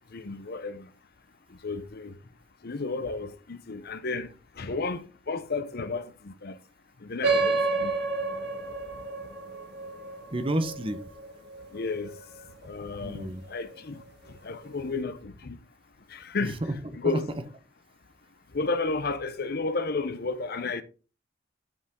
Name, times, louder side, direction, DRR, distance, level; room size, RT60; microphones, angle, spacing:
voice 1, 0.1-0.8 1.6-2.1 2.6-4.3 4.6-6.6 7.1-7.9 11.7-12.1 12.6-14.0 14.4-15.6 16.1-16.6 16.9-17.3 18.5-20.8, left 3 dB, 55° left, 0.8 m, -32 dB
sound 1, 7.2-12.2, right 3 dB, 60° right, 1.7 m, -30 dB
voice 2, 10.3-11.0 13.0-13.4 16.4-16.8 17.1-17.2, right 1 dB, 30° right, 1.0 m, -30 dB
11.5 x 5.0 x 3.7 m
head